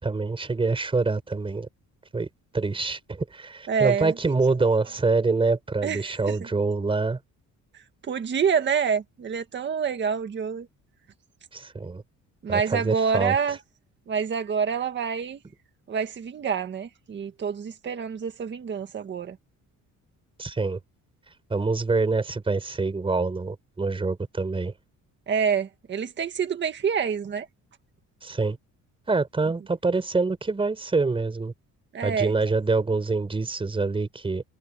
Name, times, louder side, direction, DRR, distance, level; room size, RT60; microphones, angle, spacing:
voice 1, 0.0-1.7 2.1-2.3 2.5-7.2 11.5-12.0 12.5-13.4 20.4-20.8 21.5-24.7 28.2-28.6 29.1-31.5 32.0-34.4, right 3 dB, 15° right, 4.9 m, -25 dB
voice 2, 3.7-4.2 5.8-6.5 8.1-10.7 12.4-13.6 14.1-15.4 15.9-19.4 25.3-27.5 31.9-32.3, right 6 dB, 35° right, 1.8 m, -27 dB
cardioid pair, 175°, 32 cm